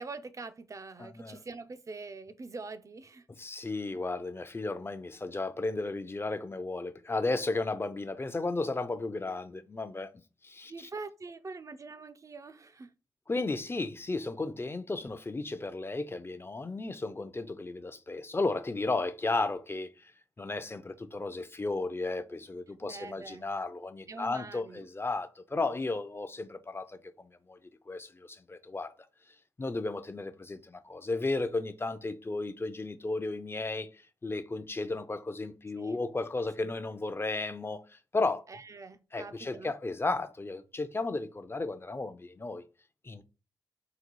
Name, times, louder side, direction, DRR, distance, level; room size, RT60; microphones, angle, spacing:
voice 1, 0.0-3.3 9.2-9.3 10.7-12.9 22.8-23.5 24.1-24.9 35.8-36.0 36.6-36.7 38.5-39.7, right 3 dB, 40° right, 0.5 m, -44 dB
voice 2, 1.0-1.4 3.4-10.1 10.4-10.9 13.3-20.1 20.4-27.6 27.9-28.9 29.6-38.4 39.1-42.6 43.0-43.2, left 3 dB, 25° left, 0.5 m, -34 dB
4.0 x 2.3 x 4.6 m
cardioid pair, 60°, 9 cm